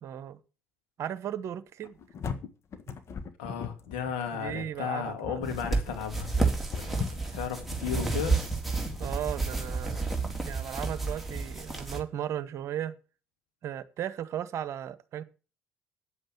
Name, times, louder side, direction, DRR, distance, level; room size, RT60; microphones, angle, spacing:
voice 1, 0.0-0.4 1.0-2.0 4.3-5.4 6.8-7.1 9.0-10.2 10.4-12.9 13.6-15.2, right 10 dB, 50° right, 1.0 m, -36 dB
sound 1, 1.8-9.0, left 6 dB, 45° left, 1.5 m, -40 dB
voice 2, 3.4-6.3 6.7-8.4, left 7 dB, 70° left, 2.3 m, -35 dB
sound 2, 5.4-12.0, right 3 dB, ahead, 3.4 m, -31 dB
9.7 x 7.8 x 7.4 m
hypercardioid pair, 55°, 6 cm